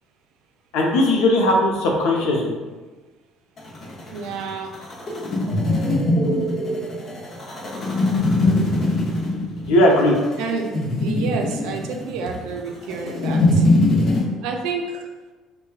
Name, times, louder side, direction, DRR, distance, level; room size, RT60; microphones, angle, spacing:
voice 1, 0.7-2.5 9.6-10.1, left 1 dB, 80° left, -1 dB, 0.7 m, -18 dB
sound 1, 3.6-14.2, left 1 dB, 35° left, 0.7 m, -22 dB
voice 2, 4.1-4.7 10.4-10.7 11.0-13.6 14.4-15.0, right 4 dB, 80° right, 2 dB, 0.4 m, -29 dB
4.4 x 2.2 x 2.3 m, 1.3 s
cardioid pair, 150°, 0 cm